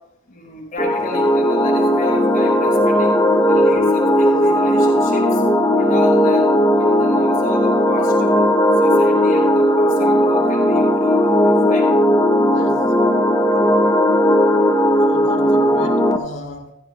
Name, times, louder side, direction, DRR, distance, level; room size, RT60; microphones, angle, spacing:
voice 1, 0.3-3.2 3.5-5.4 5.8-8.4 8.8-11.9 13.5-13.7, equal, 35° left, 5.1 m, -31 dB
sound 1, 0.8-16.2, equal, 15° left, 0.6 m, -16 dB
voice 2, 12.5-12.9 15.1-16.7, left 1 dB, 65° left, 1.8 m, -35 dB
16.0 x 15.0 x 2.3 m
head